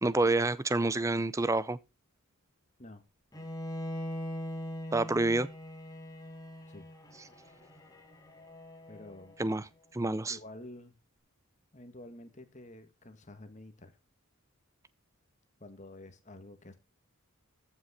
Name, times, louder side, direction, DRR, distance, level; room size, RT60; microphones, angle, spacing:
voice 1, 0.0-1.8 4.9-5.5 9.4-9.7 9.9-10.4, right 2 dB, 15° right, 0.5 m, -28 dB
Bowed string instrument, 3.3-9.4, equal, 15° left, 2.1 m, -42 dB
voice 2, 8.9-9.4 10.3-11.0 11.7-13.9 15.6-16.7, left 1 dB, 35° left, 1.6 m, -49 dB
14.0 x 6.1 x 4.2 m
head